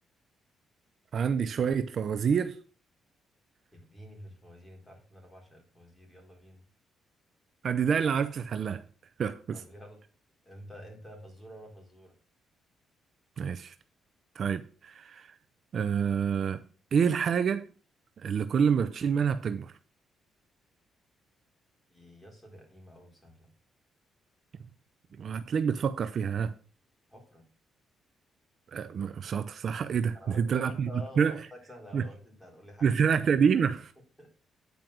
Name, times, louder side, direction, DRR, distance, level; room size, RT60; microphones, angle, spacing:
voice 1, 1.1-2.6 7.6-8.8 9.2-9.6 13.4-13.7 14.4-15.3 15.7-16.6 16.9-17.7 18.2-19.7 25.2-26.6 28.7-30.9 31.2-31.4 31.9-32.0 32.8-33.9, right 7 dB, 55° right, 0.5 m, -27 dB
voice 2, 3.7-6.6 9.5-10.0 10.4-12.1 21.9-23.5 27.1-27.4 30.1-33.2 34.2-34.3, equal, 10° left, 3.9 m, -49 dB
9.3 x 5.2 x 6.0 m
cardioid pair, 90°, 0 cm